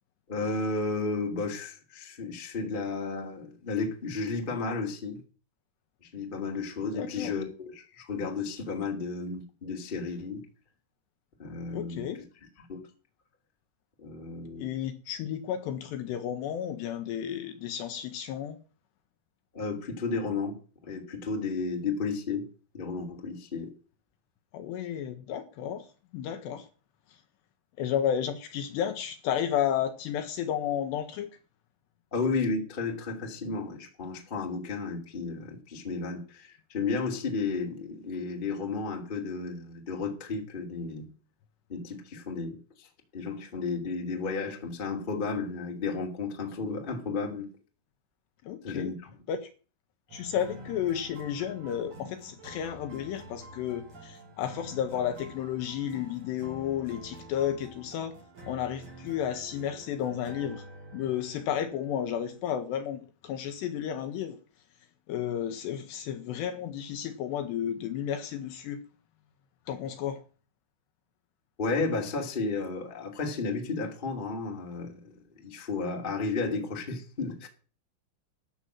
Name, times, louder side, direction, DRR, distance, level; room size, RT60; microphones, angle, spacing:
voice 1, 0.3-5.2 6.0-10.4 11.4-12.1 12.7-12.8 14.0-14.7 19.5-20.6 20.8-22.4 22.7-23.7 32.1-41.0 41.7-42.6 43.1-47.5 48.6-49.2 71.6-77.5, left 4 dB, 25° left, 1.2 m, -33 dB
voice 2, 6.9-7.3 11.7-12.2 14.6-18.6 24.5-25.9 26.1-26.7 27.8-31.3 48.4-48.9 49.3-49.5 50.1-58.2 58.5-60.6 60.9-64.4 65.1-68.8 69.7-70.2, left 9 dB, 80° left, 2.7 m, -32 dB
sound 1, 50.1-62.4, right 1 dB, 35° right, 4.8 m, -48 dB
13.0 x 6.2 x 7.4 m
omnidirectional pair, 5.5 m